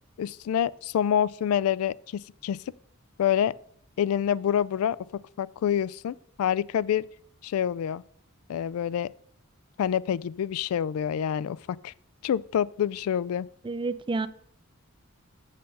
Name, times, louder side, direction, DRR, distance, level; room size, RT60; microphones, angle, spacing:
voice 1, 0.2-2.6 3.2-3.6 4.0-7.1 7.4-8.0 8.5-9.1 9.8-11.9 12.2-13.5, left 9 dB, 90° left, 0.3 m, -27 dB
voice 2, 13.6-14.3, right 3 dB, 25° right, 0.4 m, -29 dB
6.8 x 6.6 x 5.3 m
head